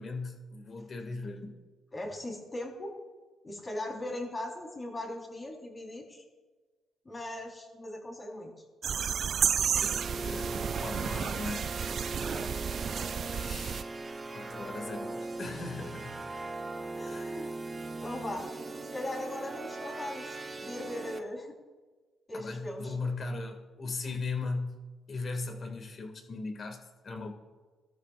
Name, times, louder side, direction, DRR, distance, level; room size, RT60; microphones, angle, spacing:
voice 1, 0.0-1.5 9.8-11.8 13.3-13.9 14.3-16.2 17.0-17.4 22.3-24.8 25.1-27.3, left 3 dB, 45° left, 4 dB, 2.2 m, -38 dB
voice 2, 1.9-2.9 3.4-6.2 7.0-8.5 12.2-12.5 13.3-13.6 15.8-15.9 17.0-17.5 18.0-18.5 18.9-21.6 22.3-22.9, left 1 dB, 25° left, 0 dB, 4.1 m, -39 dB
sound 1, 8.8-13.8, right 7 dB, 55° right, 0.4 m, -32 dB
sound 2, 9.8-21.2, right 2 dB, 25° right, 1.5 m, -39 dB
Subway metro underground, 11.3-16.5, left 2 dB, 90° left, 5.1 m, -57 dB
22.0 x 13.5 x 2.5 m, 1.4 s
cardioid pair, 90°, 0 cm